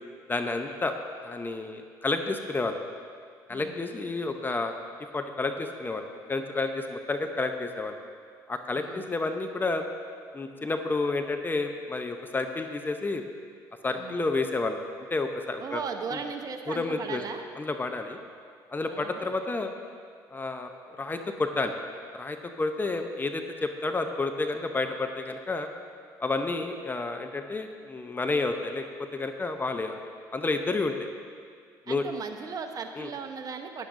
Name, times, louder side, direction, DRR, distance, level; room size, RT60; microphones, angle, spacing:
voice 1, 0.3-0.9 1.2-2.8 3.5-4.7 5.1-8.0 8.5-9.8 10.3-13.2 13.8-14.8 15.1-15.8 16.1-16.2 16.7-17.2 17.6-18.2 18.7-19.7 20.3-20.7 21.0-21.7 22.1-25.7 26.2-29.9 30.3-30.9 31.9-32.1 33.0-33.1, left 3 dB, 25° left, 6 dB, 0.7 m, -30 dB
voice 2, 3.5-3.8 8.7-9.1 14.0-14.2 15.6-17.4 18.9-19.3 31.9-33.9, right 5 dB, 45° right, 5 dB, 0.9 m, -37 dB
13.5 x 9.9 x 2.7 m, 2.1 s
supercardioid pair, 70°, 9 cm